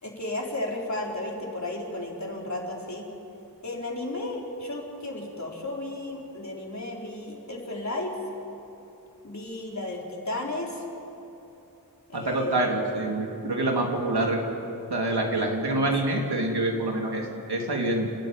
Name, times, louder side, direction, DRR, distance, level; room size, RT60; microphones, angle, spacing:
voice 1, 0.0-3.1 3.6-8.1 9.2-10.8 12.1-13.1, left 2 dB, 45° left, -2 dB, 4.3 m, -34 dB
voice 2, 12.1-14.4 14.9-18.1, right 2 dB, 80° right, 0 dB, 3.3 m, -26 dB
29.5 x 13.0 x 9.2 m, 2.9 s
wide cardioid pair, 75°, 38 cm